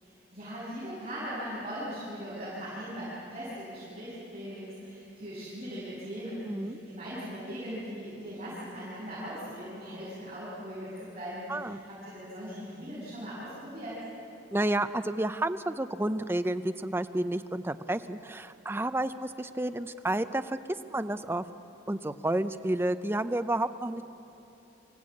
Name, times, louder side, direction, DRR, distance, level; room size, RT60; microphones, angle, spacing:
voice 1, 0.0-14.0, equal, 35° right, -10 dB, 6.7 m, -39 dB
voice 2, 6.5-6.8 11.5-11.8 14.5-20.6 20.9-21.4 21.9-24.0, right 1 dB, 10° right, 10 dB, 0.5 m, -30 dB
26.0 x 15.5 x 8.5 m, 3.0 s
head